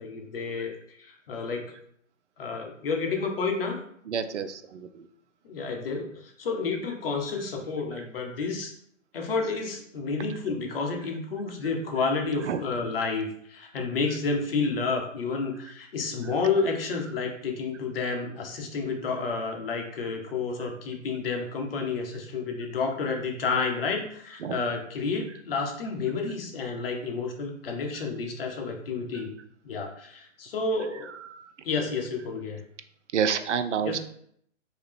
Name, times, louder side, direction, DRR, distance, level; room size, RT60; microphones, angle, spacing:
voice 1, 0.0-1.7 2.4-3.8 5.4-8.7 9.1-29.3 29.6-31.1 31.6-32.6 33.8-34.0, left 4 dB, 50° left, 2 dB, 0.8 m, -30 dB
voice 2, 4.1-5.1 12.4-12.6 24.4-24.6 31.3-31.5 33.1-34.0, right 7 dB, 65° right, 9 dB, 0.5 m, -29 dB
3.2 x 2.8 x 3.3 m, 0.67 s
figure-of-eight pair, 135°, 38 cm